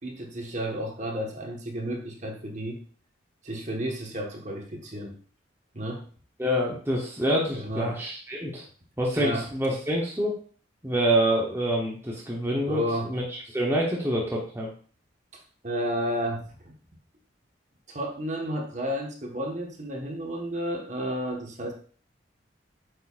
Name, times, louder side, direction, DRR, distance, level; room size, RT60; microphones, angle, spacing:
voice 1, 0.0-2.8 3.4-5.2 5.7-6.1 7.5-8.0 9.2-9.4 12.7-13.1 15.6-16.7 17.9-21.7, equal, 40° right, 1 dB, 1.4 m, -32 dB
voice 2, 6.4-8.6 9.0-10.3 10.8-14.7, right 1 dB, 10° right, -3 dB, 0.9 m, -26 dB
8.3 x 6.5 x 2.5 m, 0.43 s
head